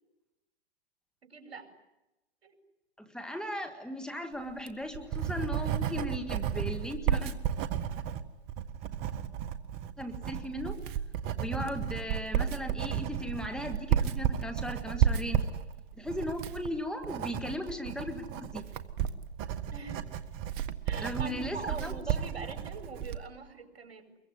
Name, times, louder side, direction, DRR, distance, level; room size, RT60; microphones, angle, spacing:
voice 1, 1.2-1.7 2.4-2.6 19.7-20.0 20.9-24.2, right 4 dB, 75° right, 6 dB, 5.7 m, -43 dB
voice 2, 3.1-7.4 10.0-10.8 11.3-15.4 16.0-18.6 21.0-22.0, left 1 dB, ahead, 5 dB, 1.9 m, -37 dB
Writing, 4.5-23.3, right 9 dB, 30° right, 1.5 m, -33 dB
25.0 x 22.5 x 9.7 m, 0.99 s
hypercardioid pair, 130°, 32 cm